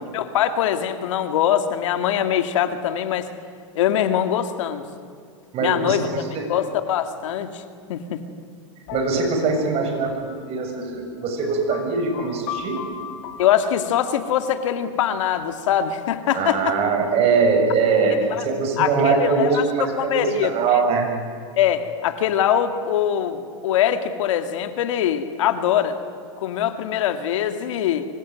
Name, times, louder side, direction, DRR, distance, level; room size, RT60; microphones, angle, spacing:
voice 1, 0.1-3.3 3.8-4.8 5.6-6.1 6.5-7.6 7.9-8.2 13.4-16.7 18.3-18.4 18.8-19.6 20.0-20.8 21.6-25.9 26.4-28.1, left 10 dB, 75° left, 7 dB, 2.4 m, -22 dB
voice 2, 5.5-6.4 8.9-12.8 16.3-21.1, right 4 dB, 40° right, 4 dB, 7.3 m, -22 dB
sound 1, 8.9-16.4, left 7 dB, 55° left, 3.3 m, -39 dB
25.0 x 24.5 x 9.6 m, 2.2 s
hypercardioid pair, 125°, 16 cm